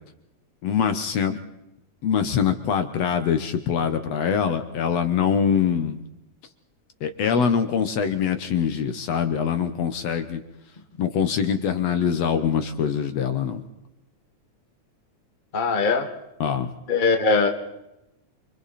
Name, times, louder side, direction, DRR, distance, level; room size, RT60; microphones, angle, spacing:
voice 1, 0.6-1.4 2.0-6.0 7.0-10.4 11.0-13.6 16.4-16.7, left 7 dB, 65° left, 9 dB, 2.1 m, -23 dB
voice 2, 15.5-16.1 16.9-17.5, left 4 dB, 20° left, 4 dB, 1.4 m, -20 dB
29.5 x 25.0 x 4.2 m, 0.88 s
omnidirectional pair, 3.4 m